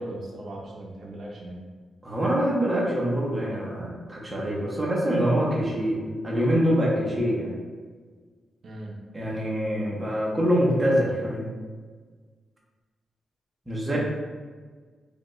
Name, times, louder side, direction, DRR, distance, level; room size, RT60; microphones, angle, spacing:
voice 1, 0.0-1.6 8.6-9.0 13.7-14.0, right 1 dB, 55° right, -2 dB, 0.6 m, -38 dB
voice 2, 2.0-7.6 9.1-11.5 13.7-14.0, equal, 10° right, -4 dB, 0.8 m, -25 dB
4.8 x 2.3 x 3.1 m, 1.5 s
wide cardioid pair, 165°, 0 cm